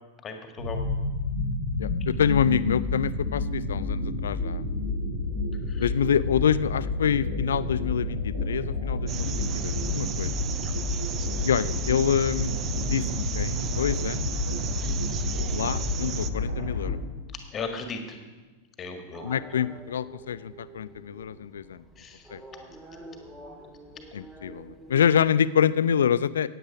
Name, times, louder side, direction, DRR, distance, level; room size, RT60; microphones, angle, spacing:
voice 1, 0.2-0.8 5.7-5.9 10.6-10.7 17.5-18.2 18.8-19.3 22.0-22.2, left 4 dB, 25° left, 5 dB, 1.8 m, -36 dB
sound 1, 0.6-16.9, left 2 dB, 75° right, 3.6 m, -30 dB
voice 2, 1.8-4.7 5.8-10.3 11.4-12.5 12.9-14.3 15.5-17.0 19.2-21.8 22.3-22.4 24.1-26.5, left 8 dB, 65° left, 17 dB, 0.4 m, -26 dB
sound 2, 9.1-16.3, right 9 dB, 30° right, 0.5 m, -35 dB
sound 3, 19.1-25.3, right 1 dB, 10° right, 1.7 m, -47 dB
15.0 x 9.5 x 4.9 m, 1.3 s
figure-of-eight pair, 90°, 0 cm